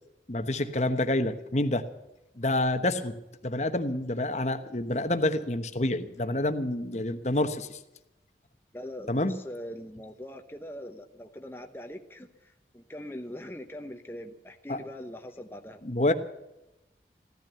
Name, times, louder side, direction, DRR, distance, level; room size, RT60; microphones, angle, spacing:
voice 1, 0.3-1.8 2.4-3.2 3.4-7.8 9.1-9.4 14.7-14.8 15.8-16.1, left 1 dB, 40° left, 9 dB, 1.1 m, -28 dB
voice 2, 8.7-15.8, left 1 dB, 10° left, 4 dB, 0.9 m, -42 dB
16.0 x 12.0 x 6.9 m, 0.93 s
head